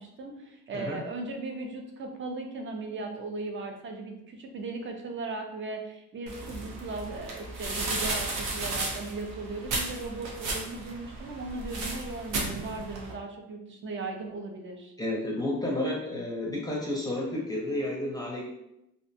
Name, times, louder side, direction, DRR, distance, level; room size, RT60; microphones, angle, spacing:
voice 1, 0.0-14.9, right 3 dB, 40° right, 3 dB, 0.5 m, -37 dB
sound 1, 6.3-13.1, right 2 dB, 90° right, 0.6 m, -34 dB
voice 2, 15.0-18.4, left 1 dB, 15° left, -3 dB, 0.6 m, -31 dB
2.5 x 2.1 x 2.6 m, 0.85 s
cardioid pair, 90°, 30 cm